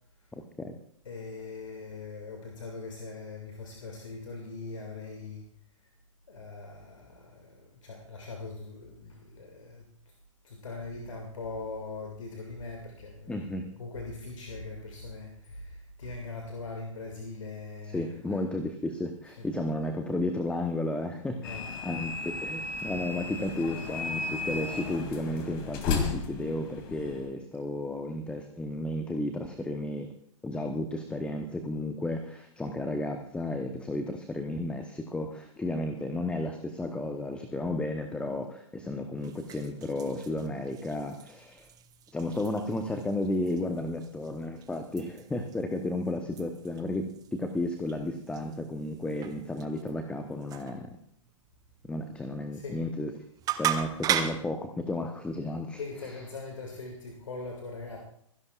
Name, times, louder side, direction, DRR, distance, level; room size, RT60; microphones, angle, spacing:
voice 1, 1.0-5.4 6.3-9.9 10.4-18.4 19.2-19.5 21.4-21.8 52.5-52.9 55.8-58.0, left 3 dB, 65° left, 1 dB, 2.2 m, -41 dB
voice 2, 13.3-13.7 17.8-30.1 30.4-41.7 42.1-51.0 51.8-53.1 53.6-56.3, left 1 dB, 5° left, 6 dB, 0.8 m, -33 dB
sound 1, 21.4-27.3, left 4 dB, 40° left, 2.4 m, -34 dB
sound 2, 39.2-54.5, right 10 dB, 20° right, 0.9 m, -39 dB
27.5 x 11.0 x 2.4 m, 0.69 s
figure-of-eight pair, 110°, 17 cm